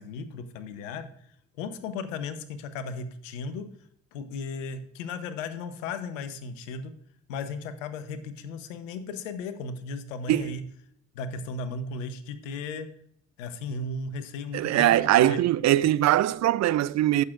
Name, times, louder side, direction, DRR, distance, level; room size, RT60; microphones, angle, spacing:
voice 1, 0.0-3.7 4.1-6.9 7.3-10.6 11.1-12.9 13.4-15.4, left 4 dB, 80° left, 0.9 m, -36 dB
voice 2, 14.5-17.2, right 13 dB, 45° right, 0.5 m, -22 dB
15.0 x 6.6 x 2.5 m
figure-of-eight pair, 40°, 38 cm